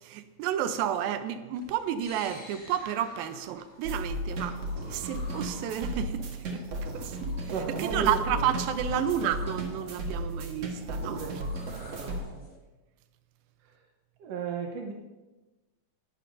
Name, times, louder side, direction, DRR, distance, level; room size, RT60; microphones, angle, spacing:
voice 1, 0.0-6.6 6.9-7.5 7.8-11.2, right 9 dB, 85° right, 9 dB, 2.5 m, -31 dB
sound 1, 1.5-12.6, left 1 dB, 25° left, 1.9 m, -51 dB
sound 2, 3.8-12.2, right 1 dB, 55° right, 2.2 m, -35 dB
voice 2, 7.5-8.5 11.0-11.5 11.9-12.5 13.6-13.9 14.2-14.9, right 5 dB, 70° right, 2 dB, 1.5 m, -36 dB
19.0 x 11.5 x 2.6 m, 1.1 s
omnidirectional pair, 4.1 m